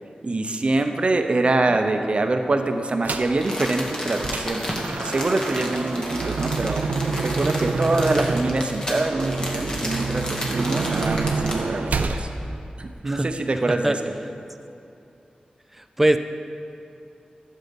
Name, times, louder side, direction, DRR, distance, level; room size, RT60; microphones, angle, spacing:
voice 1, 0.2-4.6 5.0-6.8 7.2-12.3 12.8-13.9, right 2 dB, 45° right, 6 dB, 0.7 m, -24 dB
sound 1, 3.0-3.4 3.9-12.2, right 4 dB, 85° right, 0.5 m, -27 dB
Crumpling crinkling, 3.1-11.7 12.2-12.3, equal, 25° left, 1.6 m, -32 dB
voice 2, 15.7-16.2, right 1 dB, 10° right, 8 dB, 0.4 m, -22 dB
12.0 x 7.4 x 5.3 m, 2.7 s
wide cardioid pair, 115°, 3 cm